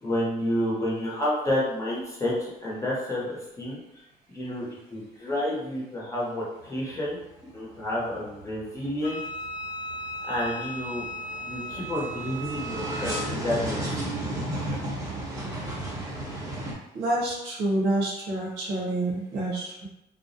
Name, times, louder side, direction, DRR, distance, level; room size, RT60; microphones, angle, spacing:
voice 1, 0.0-3.8 4.3-9.2 10.2-11.0 11.4-13.8 14.5-14.8, left 1 dB, 20° left, -6 dB, 0.8 m, -30 dB
sound 1, 6.6-7.2 7.5-16.7, right 1 dB, 15° right, 0.9 m, -34 dB
Wind instrument woodwind instrument, 9.0-13.3, equal, 45° left, 0.5 m, -36 dB
voice 2, 16.9-19.9, right 1 dB, 90° right, -3 dB, 0.7 m, -28 dB
2.4 x 2.0 x 2.6 m, 0.88 s
cardioid pair, 110°, 17 cm